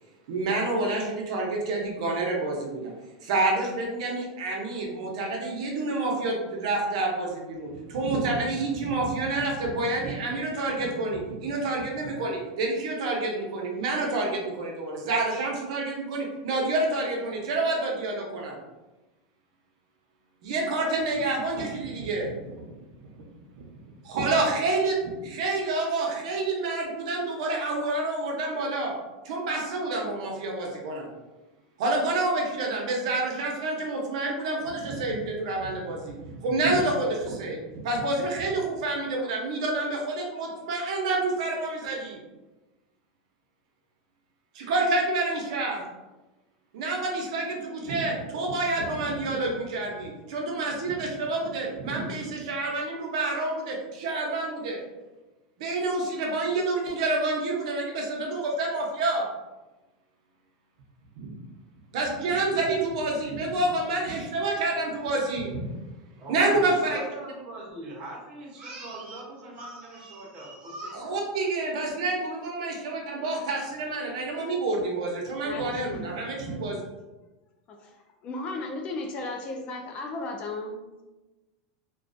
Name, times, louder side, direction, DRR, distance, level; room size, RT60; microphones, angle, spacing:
voice 1, 0.3-2.9 3.2-18.6 20.4-22.5 23.1-23.2 24.0-29.0 29.2-31.1 31.8-37.6 37.8-42.2 44.5-45.8 46.7-54.8 55.6-59.3 61.2-61.3 61.9-65.6 66.3-67.0 71.0-76.8, right 2 dB, 75° right, 0 dB, 0.6 m, -28 dB
voice 2, 66.2-71.1, right 1 dB, 35° right, -4 dB, 0.9 m, -40 dB
voice 3, 75.4-76.1 77.7-78.0 78.2-81.0, left 2 dB, 35° left, 2 dB, 0.4 m, -35 dB
2.3 x 2.3 x 2.5 m, 1.1 s
supercardioid pair, 145°, 4 cm